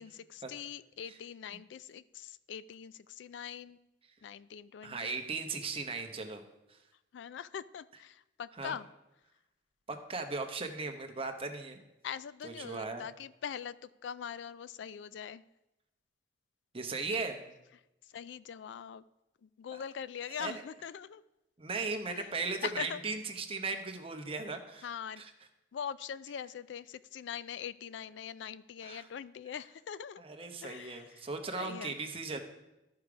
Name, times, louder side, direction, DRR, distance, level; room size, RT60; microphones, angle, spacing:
voice 1, 0.0-3.8 4.2-5.2 7.1-8.9 12.0-15.4 18.0-19.0 19.4-21.2 22.1-22.3 22.6-23.0 24.8-25.2 25.7-30.2 30.6-31.3 31.6-32.0, left 8 dB, 75° left, 17 dB, 0.3 m, -42 dB
voice 2, 4.8-6.4 6.7-6.8 8.6-8.8 9.9-11.8 12.4-13.0 16.7-17.4 19.7-19.8 20.4-20.5 21.6-24.9 25.2-25.3 28.8-29.1 30.2-32.4, right 4 dB, 30° right, 5 dB, 0.9 m, -37 dB
13.0 x 4.8 x 4.9 m, 0.95 s
head